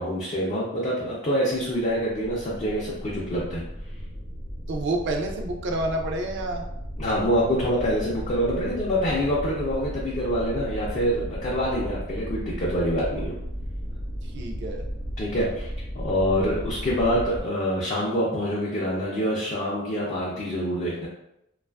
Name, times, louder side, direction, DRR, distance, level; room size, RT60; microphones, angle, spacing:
voice 1, 0.0-3.6 7.0-13.4 15.2-21.1, equal, 35° left, -6 dB, 0.4 m, -26 dB
sound 1, 1.6-17.4, equal, 75° left, 0.7 m, -35 dB
voice 2, 4.7-6.6 14.2-14.9, right 2 dB, 60° right, 3 dB, 0.4 m, -29 dB
2.5 x 2.3 x 2.3 m, 0.82 s
head